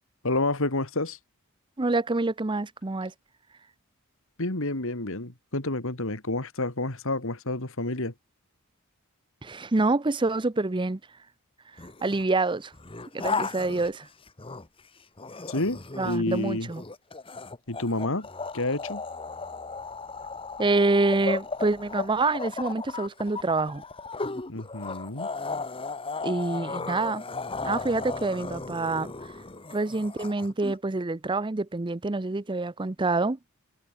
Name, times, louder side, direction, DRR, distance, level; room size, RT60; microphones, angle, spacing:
voice 1, 0.2-1.2 4.4-8.1 15.5-16.7 17.7-18.3 18.5-19.0 24.5-25.3, left 2 dB, 60° left, 2.9 m, -29 dB
voice 2, 1.8-3.1 9.4-11.0 12.0-12.7 13.1-14.1 16.0-16.8 20.6-23.8 26.2-27.2 27.6-29.1 29.7-33.4, right 3 dB, 20° right, 0.6 m, -26 dB
sound 1, 11.8-12.2 12.7-14.8 15.2-30.8, left 4 dB, 25° left, 1.4 m, -35 dB
head